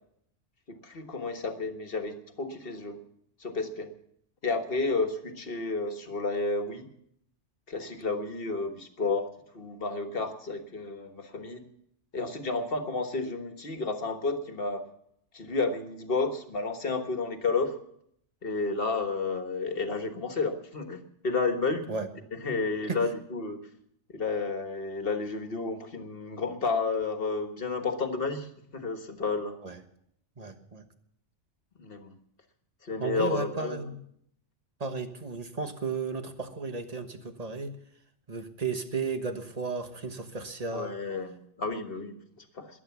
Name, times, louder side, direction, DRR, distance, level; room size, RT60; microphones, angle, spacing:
voice 1, 0.8-3.0 3.4-3.9 4.4-6.9 7.7-9.3 9.5-11.6 12.1-14.8 15.3-17.7 18.4-21.9 22.3-23.7 24.1-29.6 31.8-32.2 32.8-33.9 40.7-42.8, left 3 dB, 55° left, 7 dB, 1.7 m, -31 dB
voice 2, 30.4-30.8 33.0-34.0 34.8-37.7 38.3-40.9, right 4 dB, 35° right, 7 dB, 1.4 m, -34 dB
21.5 x 8.7 x 7.1 m, 0.72 s
omnidirectional pair, 1.2 m